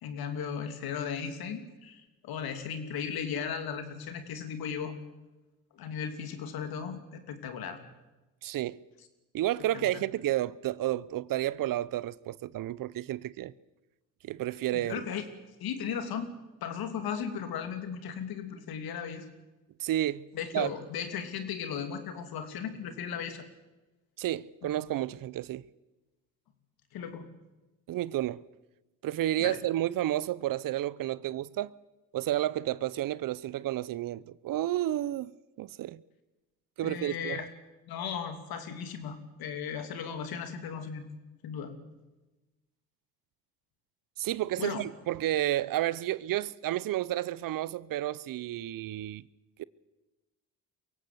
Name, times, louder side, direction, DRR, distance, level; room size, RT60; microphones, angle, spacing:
voice 1, 0.0-4.9 5.7-7.8 9.7-9.9 14.7-15.3 15.6-16.3 16.6-19.3 20.3-23.4 24.6-24.7 26.9-27.3 29.4-29.6 36.8-37.5 37.8-41.1 41.4-41.7 44.6-44.8, left 7 dB, 70° left, 3.0 m, -36 dB
voice 2, 8.4-8.8 9.3-13.5 14.2-15.0 19.8-20.3 20.5-20.7 24.2-25.6 27.9-28.4 29.0-31.7 32.1-35.3 35.6-36.0 36.8-37.4 44.2-49.2 49.6-49.7, right 14 dB, 60° right, 0.8 m, -31 dB
23.0 x 16.5 x 8.0 m
supercardioid pair, 65°, 38 cm